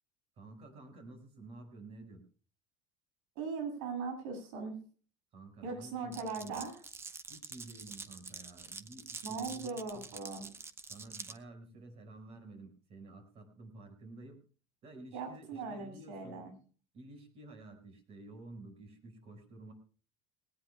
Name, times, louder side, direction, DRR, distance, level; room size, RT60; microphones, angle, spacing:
voice 1, 0.4-2.2 5.3-6.6 7.3-10.1 10.9-14.4 14.8-16.4 16.9-19.7, right 2 dB, 40° right, 6 dB, 5.1 m, -51 dB
voice 2, 3.4-4.8 5.6-6.8 9.2-10.5 15.1-16.5, right 4 dB, 90° right, 6 dB, 7.6 m, -39 dB
Glass, 6.1-11.4, right 4 dB, 15° right, 0.8 m, -47 dB
21.0 x 17.5 x 2.2 m, 0.37 s
cardioid pair, 165°, 16 cm